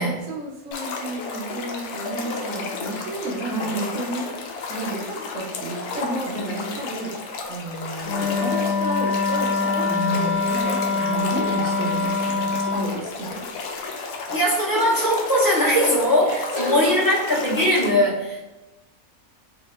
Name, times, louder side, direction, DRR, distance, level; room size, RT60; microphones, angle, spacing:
voice 1, 0.0-7.2 7.5-9.8 10.1-13.4 15.9-16.0 16.2-17.0, right 2 dB, 65° right, -4 dB, 1.1 m, -32 dB
sound 1, 0.7-17.9, left 4 dB, 90° left, 1.1 m, -33 dB
voice 2, 3.5-3.9 9.9-10.4 11.0-12.1 14.3-18.4, equal, 20° left, -6 dB, 0.7 m, -22 dB
Wind instrument woodwind instrument, 8.0-12.9, left 4 dB, 65° left, 0.8 m, -24 dB
3.2 x 2.6 x 3.1 m, 1.0 s
omnidirectional pair, 1.5 m